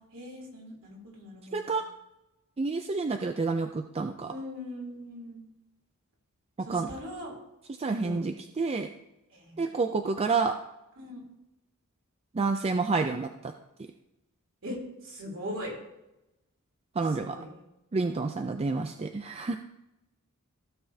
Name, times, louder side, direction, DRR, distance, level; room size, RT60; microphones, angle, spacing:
voice 1, 0.1-1.7 4.3-5.4 6.6-7.3 8.0-8.2 9.3-9.7 11.0-11.2 14.6-15.7 17.1-17.5 18.0-18.2, left 1 dB, 60° right, -2 dB, 3.4 m, -40 dB
voice 2, 1.5-1.8 2.6-4.3 6.6-6.9 7.8-8.9 9.6-10.5 12.3-13.5 17.0-17.4 17.9-19.6, right 4 dB, 25° right, 6 dB, 0.4 m, -29 dB
15.5 x 6.9 x 2.8 m, 0.92 s
head